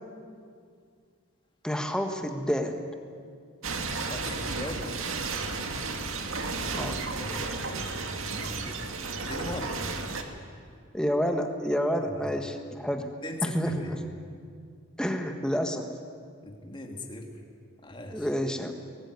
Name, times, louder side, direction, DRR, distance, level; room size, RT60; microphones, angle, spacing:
voice 1, 1.6-2.8 6.7-7.0 10.9-13.1 13.4-14.0 15.0-15.9 18.1-18.7, equal, 5° left, 5 dB, 1.5 m, -29 dB
sound 1, 3.6-10.2, right 3 dB, 70° right, 2.1 m, -33 dB
voice 2, 3.9-5.0 7.2-8.9 9.3-9.8 12.0-12.4 13.2-14.0 16.4-17.3 17.8-18.3, left 2 dB, 20° left, 2 dB, 2.6 m, -39 dB
22.5 x 19.5 x 9.6 m, 2.2 s
head